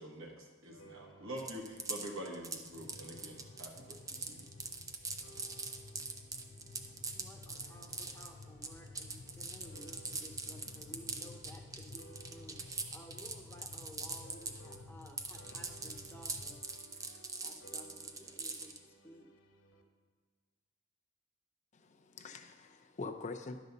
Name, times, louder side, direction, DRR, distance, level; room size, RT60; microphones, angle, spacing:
voice 1, 0.0-4.4, right 1 dB, 75° right, 0 dB, 1.3 m, -46 dB
sound 1, 0.7-15.1 15.4-19.8, right 1 dB, 65° left, 1.3 m, -60 dB
sound 2, 1.4-14.8 15.0-18.8, right 4 dB, 15° right, 0.5 m, -42 dB
sound 3, 2.7-16.6, left 3 dB, 85° left, 0.6 m, -54 dB
voice 2, 7.1-16.6 16.9-19.2, equal, 10° left, 1 dB, 0.9 m, -56 dB
voice 3, 21.7-23.6, left 3 dB, 35° left, 6 dB, 0.5 m, -44 dB
11.0 x 4.0 x 6.6 m, 1.4 s
head